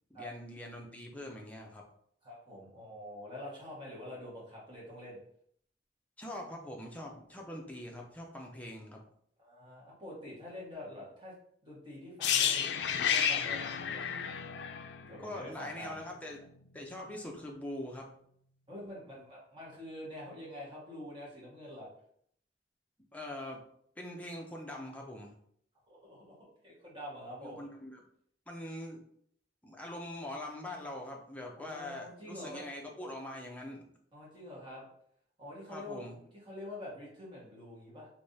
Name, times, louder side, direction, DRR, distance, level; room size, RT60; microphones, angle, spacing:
voice 1, 0.1-1.8 6.2-9.0 15.2-16.5 16.7-18.1 23.1-23.6 24.0-25.3 27.4-28.0 28.5-29.0 29.6-33.9 35.7-36.2, left 1 dB, 10° left, 0 dB, 0.5 m, -43 dB
voice 2, 2.2-5.2 9.4-11.3 11.6-14.1 15.1-16.0 18.7-21.9 25.9-27.6 31.6-32.6 34.1-34.8 35.4-36.2 36.5-38.1, left 1 dB, 30° right, -6 dB, 1.4 m, -46 dB
sound 1, 12.2-16.1 16.3-16.5, left 8 dB, 75° left, 0.3 m, -31 dB
3.4 x 3.2 x 2.7 m, 0.66 s
head